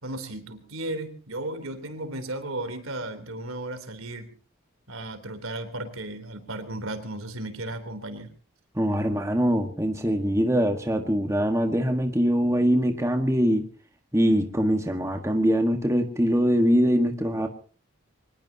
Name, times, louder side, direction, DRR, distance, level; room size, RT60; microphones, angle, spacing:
voice 1, 0.0-4.3 4.9-8.3, right 1 dB, 85° right, 8 dB, 3.5 m, -35 dB
voice 2, 8.7-13.7 14.1-17.5, equal, 15° right, 4 dB, 1.6 m, -23 dB
24.0 x 20.5 x 2.9 m, 0.38 s
head